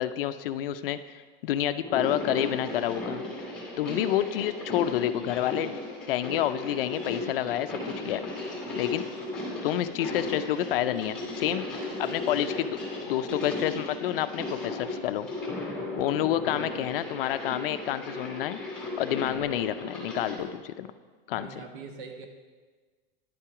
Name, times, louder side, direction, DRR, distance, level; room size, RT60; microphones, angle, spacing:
voice 1, 0.0-3.3 3.8-5.8 6.1-8.2 8.8-9.0 9.6-11.6 12.0-12.8 13.0-15.3 16.0-18.6 19.0-20.9 21.3-21.5, left 12 dB, 65° left, 11 dB, 0.4 m, -29 dB
sound 1, 1.8-20.4, left 2 dB, ahead, 1.6 m, -36 dB
voice 2, 16.3-17.0 21.4-22.3, right 4 dB, 60° right, 4 dB, 1.2 m, -44 dB
10.5 x 5.8 x 4.8 m, 1.4 s
supercardioid pair, 175°, 30 cm